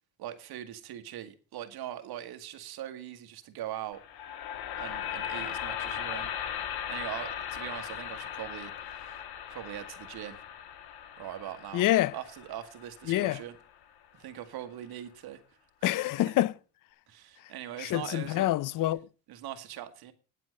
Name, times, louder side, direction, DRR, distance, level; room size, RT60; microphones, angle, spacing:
voice 1, 0.2-4.0 4.8-6.3 6.9-8.7 9.0-9.1 9.5-10.4 11.2-11.8 12.1-13.6 14.1-15.4 15.8-16.0 17.1-18.5 19.3-20.1, right 12 dB, 70° right, 1.8 m, -41 dB
sound 1, 3.9-14.1, left 9 dB, 70° left, 1.6 m, -38 dB
voice 2, 11.7-12.1 13.1-13.4 15.8-16.5 17.8-19.0, left 15 dB, 55° left, 0.6 m, -26 dB
9.9 x 7.6 x 6.4 m
cardioid pair, 95°, 39 cm